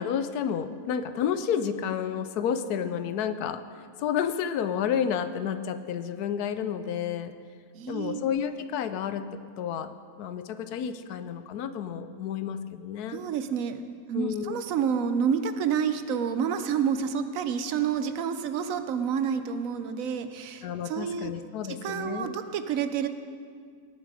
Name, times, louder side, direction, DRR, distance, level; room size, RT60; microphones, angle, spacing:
voice 1, 0.0-3.6 4.0-7.3 7.9-13.2 14.1-14.6 20.6-22.3, left 8 dB, 90° left, 11 dB, 1.2 m, -31 dB
voice 2, 7.7-8.2 13.1-13.8 14.1-21.3 21.7-23.1, right 7 dB, 70° right, 10 dB, 1.0 m, -29 dB
18.5 x 7.2 x 4.8 m, 2.1 s
omnidirectional pair, 1.6 m